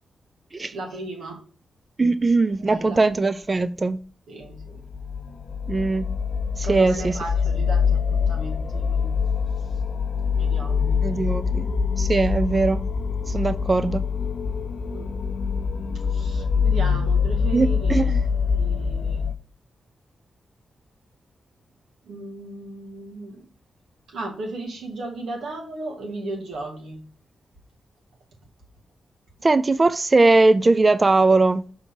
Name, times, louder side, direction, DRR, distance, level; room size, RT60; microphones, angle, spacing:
voice 1, 0.7-1.5 2.6-3.0 4.3-4.8 6.6-9.2 10.3-11.1 14.9-15.1 16.1-18.2 18.5-19.3 22.0-23.5 24.1-27.0, right 2 dB, 90° right, 2.1 m, -35 dB
voice 2, 2.0-4.0 5.7-6.1 6.6-7.1 11.0-11.7 12.0-12.8 13.3-14.0 17.5-18.2 29.4-31.6, right 3 dB, 30° right, 0.4 m, -20 dB
sound 1, 4.5-19.3, left 6 dB, 55° left, 0.6 m, -24 dB
6.2 x 3.9 x 6.0 m
cardioid pair, 70°, 0 cm